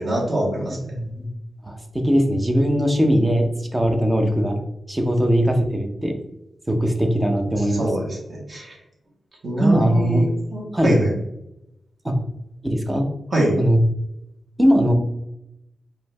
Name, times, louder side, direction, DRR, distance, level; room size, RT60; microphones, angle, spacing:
voice 1, 0.0-0.8 7.5-8.8 9.4-11.1 13.3-13.6, right 1 dB, 40° right, -3 dB, 1.6 m, -24 dB
voice 2, 0.7-1.3 1.6-4.6 4.9-6.1 6.7-7.9 9.6-10.2 10.7-11.0 12.0-12.2 12.6-13.1 13.6-13.8 14.6-14.9, equal, 15° right, 4 dB, 0.7 m, -20 dB
5.0 x 2.7 x 3.4 m, 0.84 s
wide cardioid pair, 150°, 0 cm